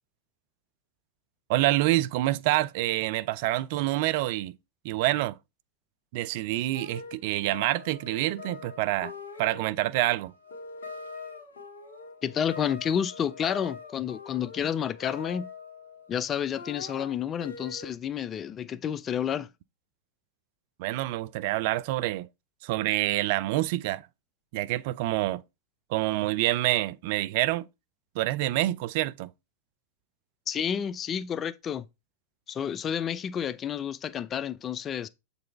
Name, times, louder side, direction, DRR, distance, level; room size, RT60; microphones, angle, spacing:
voice 1, 1.5-4.5 4.8-5.4 6.1-9.1 9.4-10.3 20.8-22.3 22.6-24.1 24.5-25.4 25.9-27.7 28.2-29.3, right 16 dB, 50° right, 0.4 m, -27 dB
sound 1, 6.7-16.2 16.6-17.9, left 4 dB, 70° left, 1.8 m, -43 dB
voice 2, 12.2-15.5 16.1-19.5 30.5-31.9 32.5-35.1, left 8 dB, 25° left, 0.4 m, -30 dB
7.6 x 4.0 x 3.4 m
figure-of-eight pair, 100°, 0 cm